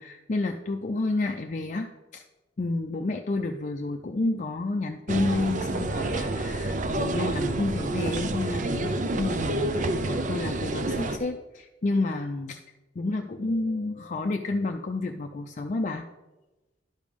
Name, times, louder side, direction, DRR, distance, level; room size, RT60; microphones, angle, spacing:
voice 1, 0.0-2.2 2.6-12.6 13.0-16.0, left 2 dB, 45° left, 4 dB, 0.5 m, -30 dB
sound 1, 5.1-11.2, right 2 dB, 45° right, 0.6 m, -28 dB
11.0 x 5.1 x 5.2 m, 1.1 s
head